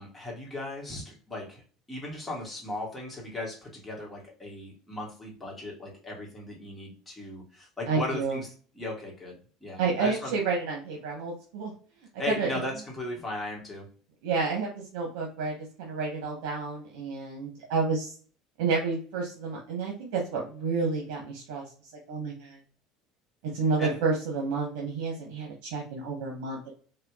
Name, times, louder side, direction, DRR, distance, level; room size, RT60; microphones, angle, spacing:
voice 1, 0.0-1.6 1.9-9.3 9.6-10.4 12.2-13.9 23.8-24.0, left 2 dB, 10° left, -3 dB, 1.2 m, -37 dB
voice 2, 7.9-8.4 9.8-11.7 12.3-12.5 14.2-18.1 18.6-21.6 22.1-22.6 23.5-26.7, right 4 dB, 85° right, -1 dB, 1.0 m, -30 dB
4.4 x 2.4 x 2.3 m, 0.42 s
cardioid pair, 165°, 0 cm